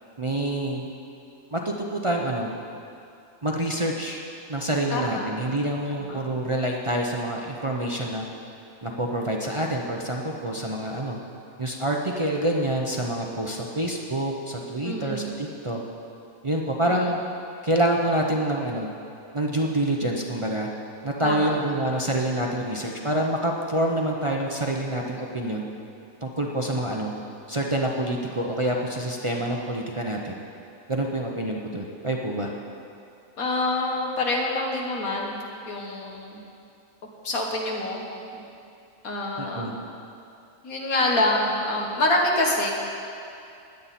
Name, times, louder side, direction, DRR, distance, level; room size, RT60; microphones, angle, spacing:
voice 1, 0.2-0.9 1.5-2.5 3.4-4.2 4.5-8.2 8.8-11.2 11.6-15.8 16.4-17.2 17.6-18.9 19.3-20.7 21.0-25.7 26.2-27.1 27.5-30.4 30.9-32.5 39.4-39.7, right 1 dB, 30° right, -1 dB, 0.7 m, -27 dB
voice 2, 4.9-5.3 5.9-6.2 14.8-15.3 16.9-17.1 21.2-21.6 33.4-36.4 37.2-38.1 38.3-38.4 39.0-39.7 40.6-42.7, left 2 dB, 85° left, -1 dB, 2.0 m, -26 dB
16.0 x 10.5 x 4.3 m, 2.6 s
omnidirectional pair, 1.5 m